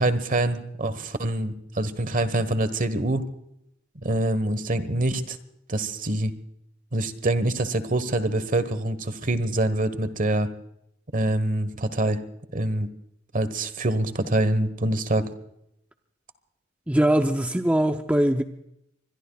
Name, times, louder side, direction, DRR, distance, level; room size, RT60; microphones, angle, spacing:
voice 1, 0.0-3.2 4.0-5.4 5.7-6.3 6.9-10.5 11.1-12.2 12.5-12.9 13.3-15.3, right 1 dB, 45° right, 13 dB, 1.2 m, -25 dB
voice 2, 16.9-18.4, right 1 dB, 5° right, 5 dB, 0.6 m, -21 dB
25.0 x 22.0 x 2.3 m, 0.79 s
head